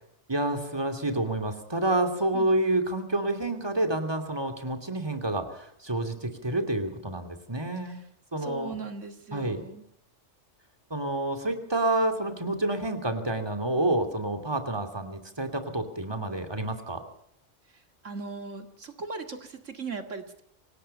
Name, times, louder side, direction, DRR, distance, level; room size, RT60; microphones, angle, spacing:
voice 1, 0.3-8.0 8.3-8.8 9.3-9.6 10.9-17.0, right 2 dB, 20° right, 6 dB, 2.7 m, -28 dB
voice 2, 8.4-9.8 18.0-20.4, right 3 dB, 85° right, 6 dB, 2.4 m, -38 dB
26.0 x 18.5 x 5.6 m, 0.69 s
omnidirectional pair, 1.2 m